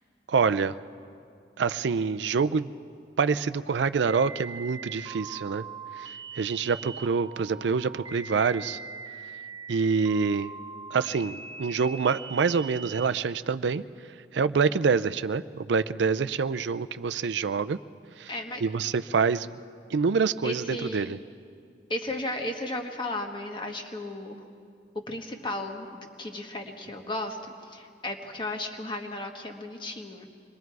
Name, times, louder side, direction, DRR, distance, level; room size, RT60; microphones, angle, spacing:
voice 1, 0.3-0.8 1.6-2.7 3.2-5.6 6.0-6.1 6.4-8.8 9.7-10.5 10.9-13.8 14.3-17.8 18.2-18.3 18.6-19.5 19.9-21.2, right 5 dB, 80° right, 13 dB, 0.4 m, -26 dB
sound 1, 4.1-13.1, right 5 dB, 25° right, 0.4 m, -41 dB
voice 2, 18.3-18.6 20.4-21.1 21.9-24.4 25.1-30.3, left 1 dB, 25° left, 3 dB, 1.4 m, -35 dB
26.0 x 21.5 x 4.7 m, 2.4 s
head